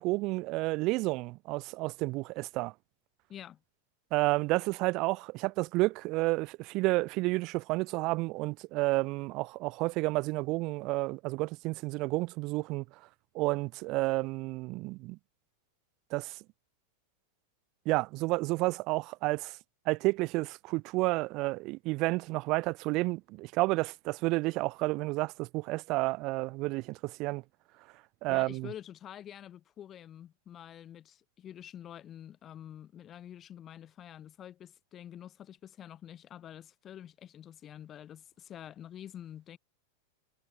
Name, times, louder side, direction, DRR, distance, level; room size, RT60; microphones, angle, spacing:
voice 1, 0.0-2.7 4.1-12.8 13.3-15.2 16.1-16.4 17.8-19.6 19.8-27.4 28.2-28.7, right 22 dB, 30° right, 3.0 m, -30 dB
voice 2, 28.3-39.6, left 10 dB, 20° left, 6.1 m, -47 dB
supercardioid pair, 175°, 0 cm